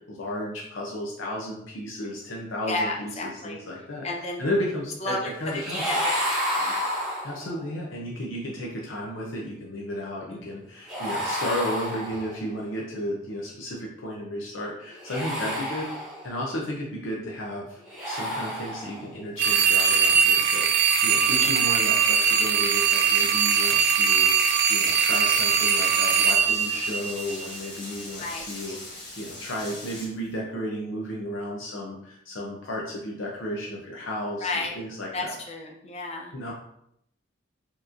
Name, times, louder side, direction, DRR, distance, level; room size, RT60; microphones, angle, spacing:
voice 1, 0.1-5.9 7.2-15.9 16.2-35.3 36.3-36.5, left 1 dB, 80° left, -2 dB, 0.7 m, -33 dB
voice 2, 2.7-3.6 4.0-4.4 5.0-5.3 5.8-6.7 28.2-28.5 34.4-34.8 35.1-36.5, left 2 dB, 35° left, 0 dB, 0.6 m, -32 dB
sound 1, 5.5-7.7 10.9-12.5 14.9-16.5 17.8-19.2 21.2-21.5, equal, 5° right, 1.0 m, -30 dB
sound 2, 19.4-27.6, right 7 dB, 60° right, 0.4 m, -21 dB
Rain, 22.7-30.1, left 2 dB, 60° left, 1.3 m, -40 dB
4.4 x 3.0 x 2.6 m, 0.74 s
head